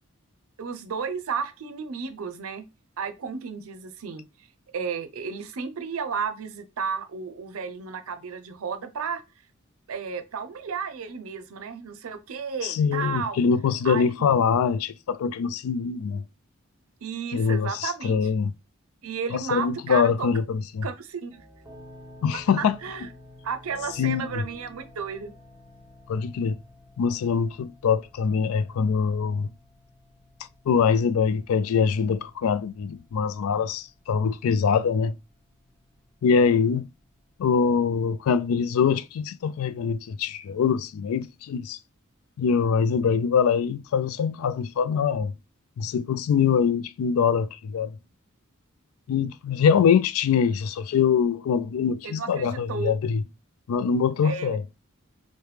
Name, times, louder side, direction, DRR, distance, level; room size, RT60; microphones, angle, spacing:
voice 1, 0.6-2.7 3.0-4.2 4.7-9.2 9.9-13.4 13.8-14.1 17.0-18.3 19.0-20.3 20.8-21.4 22.6-23.1 23.4-25.3 52.0-52.9 54.2-54.6, right 6 dB, 90° right, 0.5 m, -33 dB
voice 2, 12.6-16.2 17.3-18.5 19.3-20.9 22.2-22.8 24.0-24.4 26.1-26.6 27.0-29.5 30.7-35.2 36.2-36.9 37.4-41.8 42.4-45.3 45.8-47.9 49.1-53.2 53.7-54.6, left 6 dB, 90° left, 0.3 m, -23 dB
sound 1, 21.3-37.8, left 1 dB, 15° right, 0.9 m, -52 dB
4.8 x 2.2 x 3.1 m
head